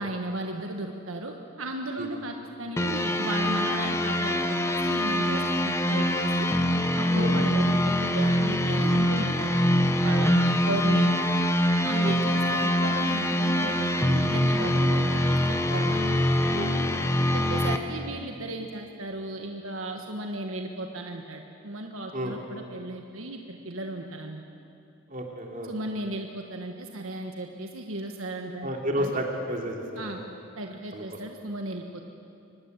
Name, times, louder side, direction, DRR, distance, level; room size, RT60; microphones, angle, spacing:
voice 1, 0.0-6.5 6.9-9.6 10.0-11.3 11.8-16.2 17.3-24.5 25.6-28.7 29.0-29.1 30.0-30.2 30.6-32.0, right 2 dB, 75° right, 3 dB, 1.5 m, -35 dB
sound 1, 2.8-17.8, equal, 15° left, 1.0 m, -24 dB
voice 2, 10.2-10.6 12.0-12.3 16.5-17.1 22.1-22.4 25.1-25.7 28.6-30.2 30.9-31.0, equal, 40° right, 1 dB, 3.1 m, -32 dB
25.0 x 20.0 x 8.2 m, 2.7 s
head